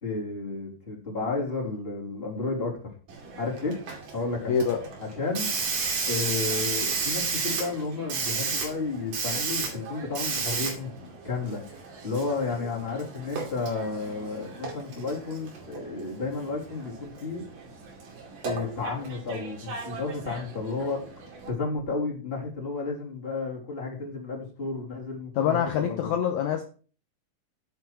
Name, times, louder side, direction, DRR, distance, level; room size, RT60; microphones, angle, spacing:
voice 1, 0.0-2.9 3.4-3.8 4.1-4.5 5.0-5.5 6.1-17.4 18.4-21.0 21.5-26.2, left 3 dB, 15° left, -1 dB, 3.1 m, -32 dB
Hiss, 3.1-21.5, right 5 dB, 85° right, 4.2 m, -34 dB
voice 2, 4.5-4.8 25.4-26.6, left 8 dB, 70° left, 5 dB, 2.1 m, -25 dB
10.5 x 8.3 x 4.7 m, 0.40 s
omnidirectional pair, 3.8 m